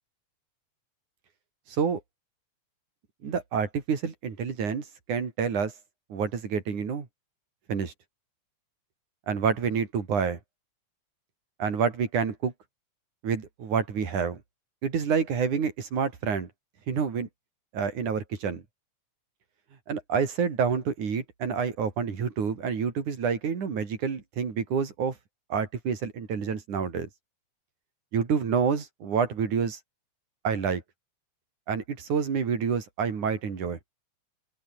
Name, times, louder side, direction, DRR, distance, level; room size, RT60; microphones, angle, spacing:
voice 1, 3.2-5.7 6.1-7.1 7.7-7.9 9.3-10.4 11.6-12.5 13.2-14.4 14.8-16.5 16.9-17.3 17.7-18.6 19.9-25.1 25.5-27.1 28.1-29.8 30.4-30.8 31.7-33.8, right 6 dB, 90° right, 5.1 m, -28 dB
open air
omnidirectional pair, 3.4 m